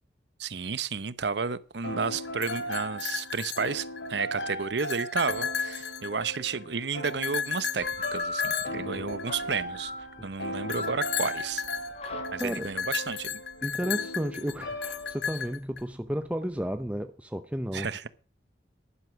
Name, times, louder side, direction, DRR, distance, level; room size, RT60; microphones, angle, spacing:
voice 1, 0.4-7.9 8.1-9.9 10.2-11.6 12.3-13.4 17.7-18.1, right 5 dB, 70° right, 0.8 m, -32 dB
sound 1, 1.8-15.5, equal, 85° left, 2.9 m, -38 dB
sound 2, 2.3-4.2 4.6-6.5 7.0-9.8 10.7-15.8, left 7 dB, 70° left, 0.8 m, -34 dB
sound 3, 7.8-17.0, left 2 dB, 35° left, 1.8 m, -41 dB
voice 2, 8.9-9.3 10.4-10.8 12.4-12.7 13.6-18.1, equal, 5° right, 0.5 m, -33 dB
11.0 x 10.5 x 6.2 m
head